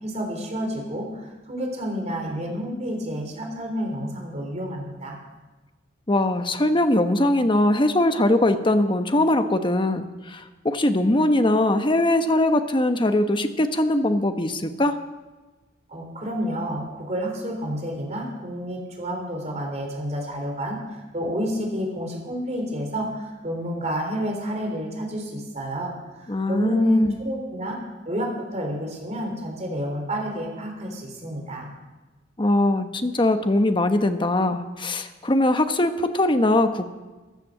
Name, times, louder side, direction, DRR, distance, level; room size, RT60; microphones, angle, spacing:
voice 1, 0.0-5.2 15.9-27.8 28.1-31.7, equal, 40° right, 1 dB, 3.7 m, -29 dB
voice 2, 6.1-15.0 26.3-27.2 32.4-36.9, left 1 dB, 25° left, 8 dB, 1.0 m, -21 dB
14.5 x 10.5 x 7.4 m, 1.2 s
head